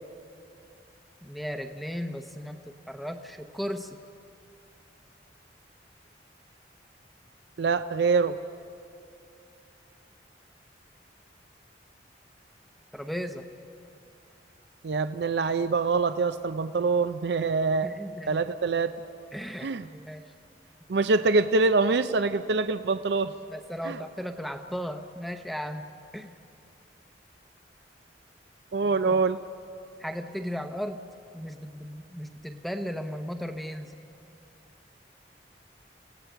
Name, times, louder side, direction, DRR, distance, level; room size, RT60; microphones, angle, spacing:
voice 1, 1.2-4.0 12.9-13.4 17.8-18.4 19.3-20.2 23.5-25.9 26.1-26.4 29.0-29.2 30.0-31.0 31.3-34.0, equal, ahead, 6 dB, 0.7 m, -36 dB
voice 2, 7.6-8.4 14.8-17.9 18.3-18.9 19.6-19.9 20.9-23.3 23.8-24.0 28.7-29.4, right 4 dB, 70° right, 11 dB, 0.5 m, -25 dB
29.5 x 17.0 x 5.7 m, 2.5 s
head